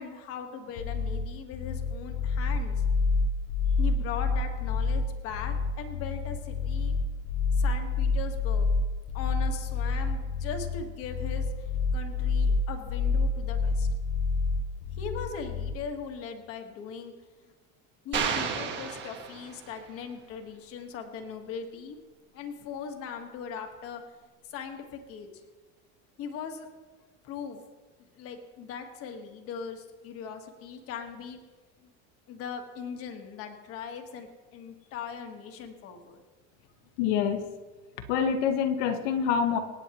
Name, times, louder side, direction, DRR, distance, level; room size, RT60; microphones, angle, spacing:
voice 1, 0.0-2.8 3.8-6.9 7.5-8.7 9.1-13.9 15.0-17.1 18.0-22.0 22.3-24.0 24.4-25.3 26.2-26.7 27.2-27.6 28.2-31.4 31.8-31.9 32.3-36.2, left 6 dB, 35° left, 5 dB, 1.4 m, -39 dB
sound 1, 0.8-15.8, left 4 dB, 55° left, 0.8 m, -28 dB
sound 2, 18.1-19.9, right 6 dB, 30° right, 1.6 m, -32 dB
voice 2, 37.0-37.4 38.1-39.6, left 7 dB, 75° left, 6 dB, 1.3 m, -26 dB
26.5 x 8.9 x 3.0 m, 1.3 s
cardioid pair, 180°, 37 cm